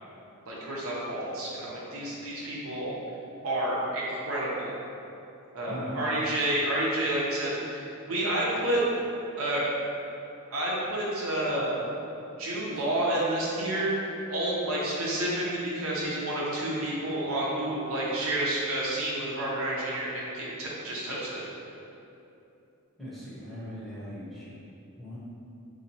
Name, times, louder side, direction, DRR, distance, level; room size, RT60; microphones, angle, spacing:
voice 1, 0.5-2.9 3.4-4.8 5.5-8.8 9.4-9.7 10.5-11.8 12.4-21.4, right 1 dB, 70° right, -6 dB, 0.8 m, -30 dB
voice 2, 5.7-6.0 17.9-18.0 23.0-24.5 25.0-25.2, equal, ahead, -10 dB, 0.8 m, -40 dB
3.9 x 2.8 x 2.8 m, 2.8 s
head